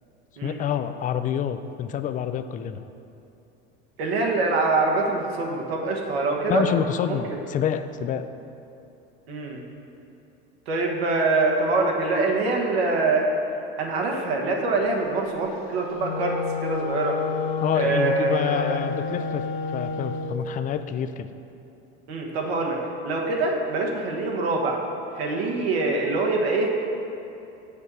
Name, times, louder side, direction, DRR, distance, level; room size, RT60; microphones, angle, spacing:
voice 1, 0.4-2.8 6.5-8.3 17.6-19.4 19.7-21.3, left 9 dB, 25° left, 10 dB, 0.4 m, -27 dB
voice 2, 4.0-6.6 7.1-7.4 9.3-9.6 10.7-13.3 13.8-16.4 16.6-17.2 17.7-18.8 22.1-22.8 23.0-24.8 25.1-26.7, right 3 dB, 75° right, 0 dB, 1.4 m, -24 dB
Wind instrument woodwind instrument, 15.9-20.4, left 5 dB, 75° left, 0.7 m, -30 dB
6.6 x 4.7 x 6.9 m, 2.8 s
hypercardioid pair, 95°, 31 cm